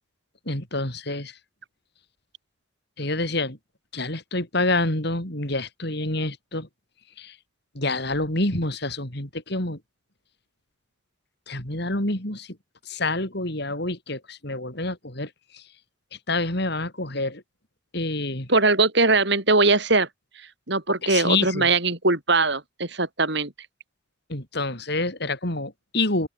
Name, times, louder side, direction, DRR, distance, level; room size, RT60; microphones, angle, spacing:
voice 1, 0.5-1.4 3.0-3.6 3.9-6.7 7.2-7.4 7.7-9.8 11.5-12.6 12.9-15.6 16.3-17.4 17.9-18.5 21.0-21.7 24.3-26.3, left 2 dB, 55° left, 5.9 m, -27 dB
voice 2, 18.5-20.1 20.7-23.5, right 3 dB, 60° right, 6.0 m, -21 dB
open air
head